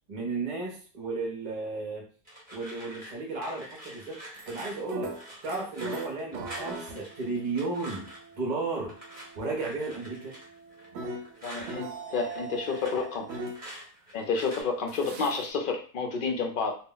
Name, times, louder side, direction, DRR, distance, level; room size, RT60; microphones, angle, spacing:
voice 1, 0.1-2.0 2.5-5.2 5.4-8.1 8.4-8.9 9.3-10.4, right 3 dB, 45° right, -1 dB, 0.7 m, -34 dB
Pill bottle, 2.2-8.3 8.9-11.8 12.1-14.6, right 1 dB, 10° right, 0.9 m, -46 dB
sound 1, 4.3-13.6 14.9-15.5, right 2 dB, 75° right, 0.8 m, -40 dB
voice 2, 11.4-13.3 14.1-16.8, left 4 dB, 60° left, 3 dB, 0.6 m, -30 dB
2.2 x 2.0 x 3.7 m, 0.41 s
omnidirectional pair, 1.2 m